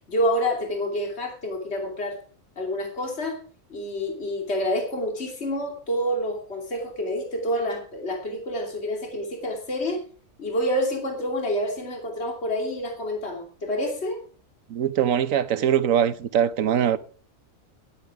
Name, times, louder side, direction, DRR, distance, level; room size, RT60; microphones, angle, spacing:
voice 1, 0.1-2.2 2.6-3.4 3.7-10.0 10.4-14.2, equal, 55° left, 3.0 m, -28 dB
voice 2, 14.7-17.0, right 9 dB, 85° right, 1.3 m, -22 dB
12.5 x 11.5 x 4.8 m
omnidirectional pair, 1.4 m